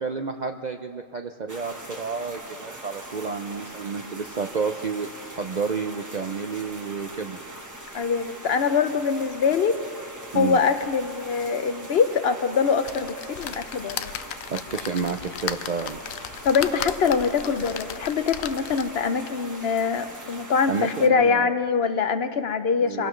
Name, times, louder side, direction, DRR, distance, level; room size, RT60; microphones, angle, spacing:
voice 1, 0.0-7.4 10.3-10.6 14.5-16.0 20.7-21.5 22.8-23.1, right 5 dB, 55° right, 5 dB, 0.5 m, -30 dB
sound 1, 1.5-21.1, right 1 dB, 15° right, 1.1 m, -41 dB
voice 2, 7.9-9.8 10.3-14.1 16.4-23.1, left 5 dB, 60° left, 10 dB, 0.8 m, -23 dB
sound 2, 12.8-19.1 19.6-19.7 20.0-20.1, left 10 dB, 90° left, 1.0 m, -36 dB
24.5 x 17.5 x 3.1 m, 2.2 s
omnidirectional pair, 1.4 m